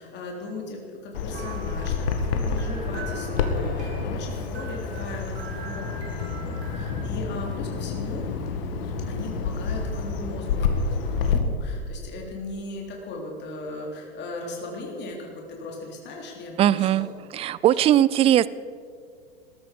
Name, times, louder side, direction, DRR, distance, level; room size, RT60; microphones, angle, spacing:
voice 1, 0.0-8.3 9.1-17.1, left 2 dB, 35° left, -1 dB, 3.7 m, -38 dB
Bird vocalization bird call bird song, 1.1-11.4, left 5 dB, 65° left, 2.2 m, -28 dB
sound 1, 1.3-7.0, right 5 dB, 80° right, 3.5 m, -43 dB
voice 2, 16.6-17.1 17.3-18.5, right 12 dB, 20° right, 19 dB, 0.4 m, -19 dB
20.0 x 13.5 x 5.4 m, 2.2 s
hypercardioid pair, 110°, 31 cm